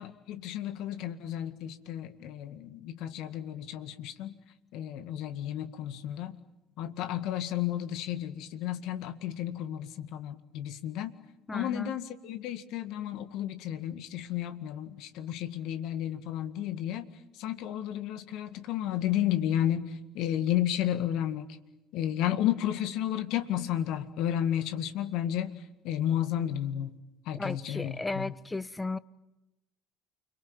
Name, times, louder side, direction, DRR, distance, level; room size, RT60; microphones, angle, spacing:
voice 1, 0.0-4.3 4.7-6.4 6.8-11.1 11.5-17.1 17.4-21.6 21.9-25.6 25.8-27.0 27.3-28.3, left 11 dB, 65° left, 1.9 m, -32 dB
voice 2, 11.5-11.9 27.3-29.0, left 2 dB, 15° left, 1.1 m, -35 dB
29.5 x 22.0 x 8.9 m
hypercardioid pair, 60°, 0 cm